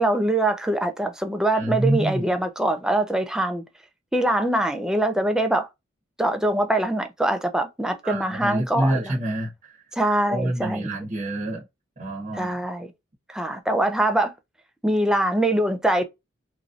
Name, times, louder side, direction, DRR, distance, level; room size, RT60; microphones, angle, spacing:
voice 1, 0.0-3.6 4.1-5.7 6.2-9.0 9.9-10.9 12.3-12.9 13.3-14.3 14.8-16.0, right 1 dB, 5° right, 0.4 m, -23 dB
voice 2, 1.5-2.4 8.0-9.8 10.3-11.7 12.0-12.6, right 1 dB, 40° right, 0.9 m, -27 dB
3.0 x 2.6 x 2.5 m
head